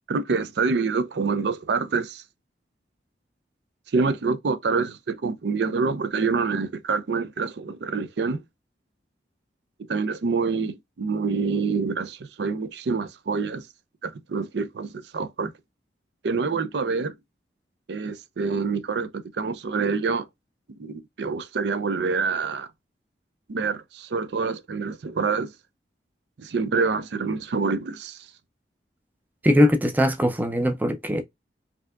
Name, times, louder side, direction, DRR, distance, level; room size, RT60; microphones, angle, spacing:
voice 1, 0.1-2.2 3.9-8.4 9.9-13.6 14.0-15.5 16.2-17.2 17.9-20.3 20.8-22.7 23.5-25.5 26.4-28.2, right 4 dB, 75° right, 0.5 m, -26 dB
voice 2, 29.4-31.2, equal, 10° right, 0.4 m, -20 dB
4.4 x 2.8 x 2.3 m
head